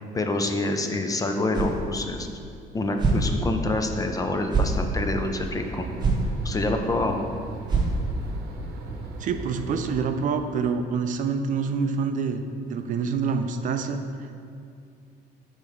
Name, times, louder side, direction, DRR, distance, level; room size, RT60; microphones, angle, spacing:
voice 1, 0.1-2.3 2.7-5.9 6.4-7.2, left 2 dB, 20° left, 4 dB, 0.5 m, -26 dB
sound 1, 1.5-1.8 2.2-2.3 3.0-3.3 3.8-3.9 4.5-4.8 5.4-5.5 6.0-6.2 6.6-6.7 7.0-7.1 7.7-8.3, right 4 dB, 25° right, 1.0 m, -24 dB
sound 2, 5.0-10.1, right 2 dB, 70° right, 0.8 m, -38 dB
voice 2, 9.2-14.0, right 5 dB, 50° right, 7 dB, 0.4 m, -26 dB
4.8 x 4.0 x 5.0 m, 2.5 s
cardioid pair, 110°, 17 cm